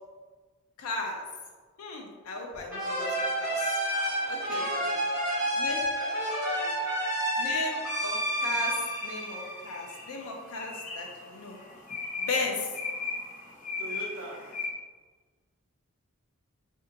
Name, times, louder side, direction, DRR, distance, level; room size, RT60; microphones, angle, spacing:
voice 1, 0.8-1.2 1.8-3.8 4.3-4.6 5.6-5.8 7.4-11.6 12.2-12.7, left 3 dB, 90° left, 1 dB, 0.6 m, -35 dB
sound 1, 2.7-10.1, equal, 10° right, 1.4 m, -30 dB
voice 2, 3.8-6.9 13.8-14.5, right 2 dB, 65° right, -2 dB, 0.7 m, -44 dB
sound 2, 8.1-14.7, left 4 dB, 35° left, 0.6 m, -39 dB
2.7 x 2.6 x 3.9 m, 1.4 s
head